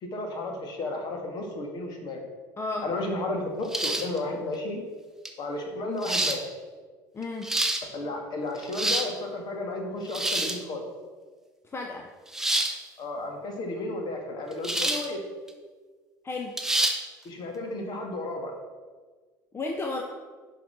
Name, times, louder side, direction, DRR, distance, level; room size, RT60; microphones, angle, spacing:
voice 1, 0.0-2.2 2.8-4.8 5.4-6.5 7.9-10.8 13.0-15.2 17.2-18.5, left 2 dB, 45° left, 3 dB, 1.9 m, -33 dB
voice 2, 2.6-2.9 7.1-7.5 11.7-12.1 16.2-16.5 19.5-20.0, left 3 dB, 25° left, 1 dB, 1.0 m, -32 dB
sound 1, 3.7-4.2 5.2-5.3 6.0-6.4 7.2-7.8 8.6-9.1 10.1-10.6 12.3-12.7 14.6-15.1 15.5-15.6 16.6-17.0, right 1 dB, 5° right, 1.0 m, -27 dB
10.5 x 4.1 x 6.4 m, 1.4 s
figure-of-eight pair, 65°, 10 cm